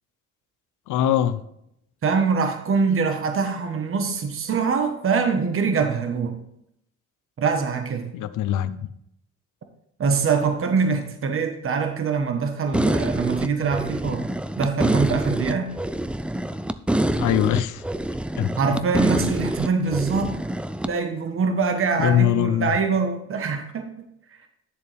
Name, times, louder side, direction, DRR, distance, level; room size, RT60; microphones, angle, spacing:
voice 1, 0.9-1.4 8.1-8.9 17.2-17.8 18.4-18.6 22.0-22.7, left 10 dB, 85° left, 13 dB, 0.7 m, -22 dB
voice 2, 2.0-6.4 7.4-8.1 10.0-14.3 14.6-15.7 18.6-20.4 20.8-23.9, right 5 dB, 45° right, 6 dB, 1.3 m, -23 dB
sound 1, 12.7-20.9, right 1 dB, 5° right, 0.4 m, -26 dB
10.5 x 6.8 x 3.5 m, 0.77 s
cardioid pair, 90°, 30 cm